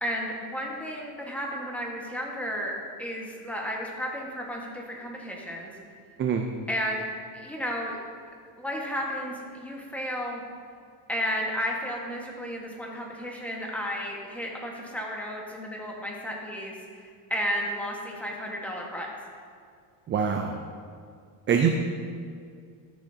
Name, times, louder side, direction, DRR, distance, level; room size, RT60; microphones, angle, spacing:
voice 1, 0.0-5.7 6.7-7.0 7.3-8.0 8.6-10.4 11.1-19.1, equal, 5° left, -2 dB, 1.5 m, -33 dB
voice 2, 20.1-20.6 21.5-21.7, right 7 dB, 25° right, 4 dB, 0.4 m, -24 dB
13.5 x 6.3 x 2.8 m, 2.2 s
supercardioid pair, 115°, 48 cm